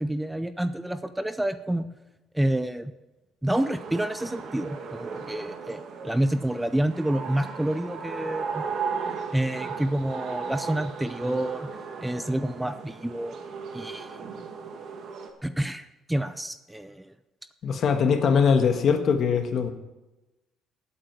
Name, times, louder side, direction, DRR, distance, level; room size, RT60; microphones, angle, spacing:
voice 1, 0.0-1.9 2.3-2.9 3.4-8.7 9.3-11.7 12.0-13.4 13.7-14.2 15.4-17.1, right 1 dB, 5° right, 11 dB, 0.5 m, -28 dB
sound 1, 3.5-15.3, right 5 dB, 55° right, 1.9 m, -36 dB
voice 2, 17.6-19.7, left 6 dB, 50° left, 7 dB, 1.5 m, -21 dB
16.5 x 8.8 x 4.7 m, 1.0 s
cardioid pair, 115°, 0 cm